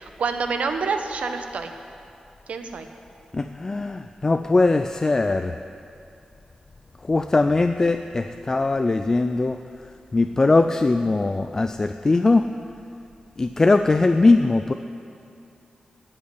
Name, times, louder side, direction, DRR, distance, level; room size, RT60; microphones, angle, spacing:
voice 1, 0.0-1.7 2.5-2.9, right 4 dB, 75° right, 6 dB, 1.0 m, -27 dB
voice 2, 3.3-5.5 7.1-9.6 10.1-12.4 13.4-14.7, left 3 dB, 25° left, 8 dB, 0.3 m, -20 dB
15.5 x 5.5 x 9.7 m, 2.6 s
wide cardioid pair, 150°, 2 cm